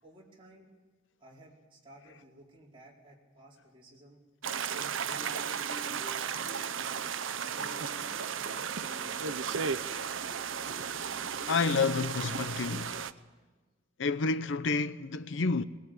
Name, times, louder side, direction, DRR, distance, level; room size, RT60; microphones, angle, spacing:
voice 1, 0.0-0.7 1.2-4.2 4.7-7.0 7.5-7.9 8.4-10.1, right 1 dB, 25° right, 4.6 m, -55 dB
sound 1, 4.4-13.1, right 7 dB, 80° right, 0.8 m, -35 dB
sound 2, 5.0-13.1, left 1 dB, 20° left, 0.7 m, -52 dB
sound 3, 7.3-13.4, right 2 dB, ahead, 7.5 m, -62 dB
voice 2, 11.5-13.0 14.0-15.6, left 4 dB, 70° left, 0.7 m, -29 dB
20.5 x 20.5 x 8.9 m
head